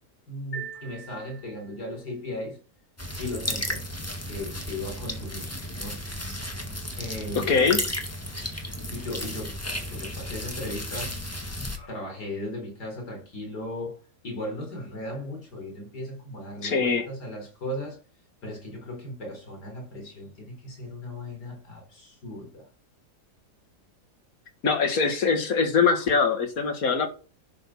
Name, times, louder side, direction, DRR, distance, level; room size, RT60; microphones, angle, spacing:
voice 1, 0.3-2.6 3.2-3.8 4.2-5.5 5.8-6.0 6.4-6.6 7.0-7.7 8.9-9.6 9.8-11.1 11.8-14.0 14.2-18.0 18.4-22.7, left 1 dB, 80° left, 4.9 m, -37 dB
sound 1, 0.5-2.0, right 5 dB, 45° left, 6.3 m, -41 dB
sound 2, 3.0-11.8, left 1 dB, 10° left, 1.5 m, -34 dB
voice 2, 7.4-7.8 16.6-17.1 24.6-27.1, left 5 dB, 60° left, 2.1 m, -23 dB
11.0 x 5.6 x 6.1 m
omnidirectional pair, 1.7 m